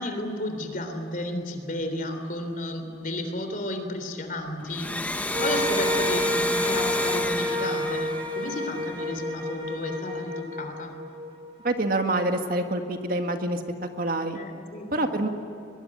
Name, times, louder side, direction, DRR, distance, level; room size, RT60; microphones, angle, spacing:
voice 1, 0.0-11.0 14.3-15.1, left 1 dB, 45° left, 6 dB, 3.5 m, -33 dB
Domestic sounds home sounds, 4.6-9.1, left 2 dB, 10° left, 0.9 m, -31 dB
sound 1, 5.3-11.7, left 1 dB, 30° right, 2.0 m, -29 dB
voice 2, 11.6-13.6 14.0-14.4 14.9-15.3, right 1 dB, 50° right, 5 dB, 1.9 m, -26 dB
23.0 x 22.5 x 8.8 m, 2.9 s
head